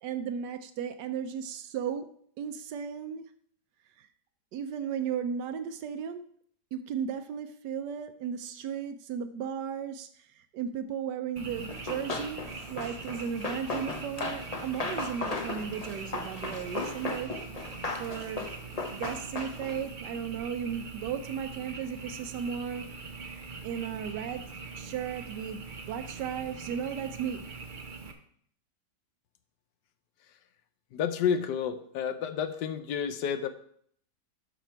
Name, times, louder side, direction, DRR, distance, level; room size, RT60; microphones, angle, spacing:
voice 1, 0.0-2.1 2.4-3.3 4.0-4.1 4.5-6.2 6.7-10.1 10.4-12.4 12.7-17.4 18.0-18.5 18.9-22.9 23.6-24.4 24.8-27.5, right 8 dB, 85° right, 8 dB, 1.2 m, -35 dB
Frog, 11.4-28.1, right 4 dB, 40° right, 0.8 m, -43 dB
Run, 11.7-19.9, left 3 dB, 30° left, 0.7 m, -36 dB
voice 2, 30.9-33.5, left 7 dB, 85° left, 10 dB, 1.3 m, -30 dB
11.5 x 5.1 x 4.5 m, 0.63 s
omnidirectional pair, 1.8 m